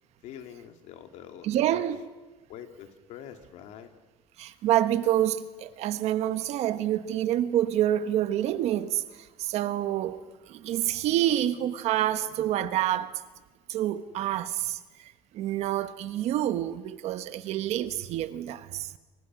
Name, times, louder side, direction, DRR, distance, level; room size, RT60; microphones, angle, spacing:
voice 1, 0.2-1.9 2.5-3.9, left 9 dB, 70° left, 2.6 m, -45 dB
voice 2, 1.4-2.0 4.4-10.2 10.5-13.1 13.7-18.9, right 12 dB, 65° right, 1.4 m, -27 dB
29.5 x 24.5 x 6.2 m
cardioid pair, 150°, 12 cm